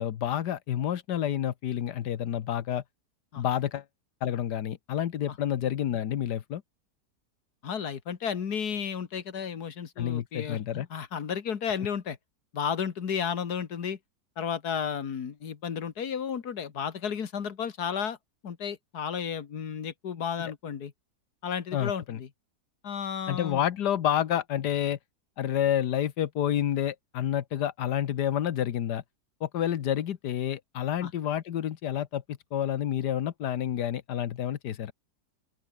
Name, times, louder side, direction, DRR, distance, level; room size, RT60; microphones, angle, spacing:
voice 1, 0.0-2.8 3.4-3.8 4.2-6.6 10.0-10.9 20.4-20.5 21.7-22.2 23.3-25.0 25.4-29.0 29.4-34.9, left 10 dB, 85° left, 1.6 m, -29 dB
voice 2, 7.6-12.2 12.5-14.0 14.4-18.2 18.4-20.9 21.4-22.3 22.8-23.6 31.0-31.1, left 7 dB, 70° left, 2.2 m, -33 dB
open air
omnidirectional pair, 1.7 m